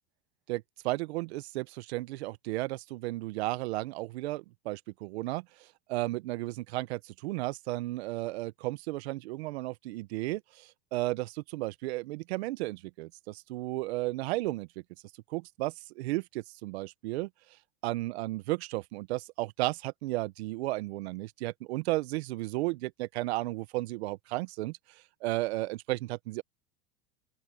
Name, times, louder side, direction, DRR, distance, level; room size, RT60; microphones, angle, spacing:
voice 1, 0.5-5.4 5.9-14.7 15.3-17.3 17.8-24.8 25.2-26.4, right 19 dB, 85° right, 0.8 m, -34 dB
open air
supercardioid pair, 150°, 31 cm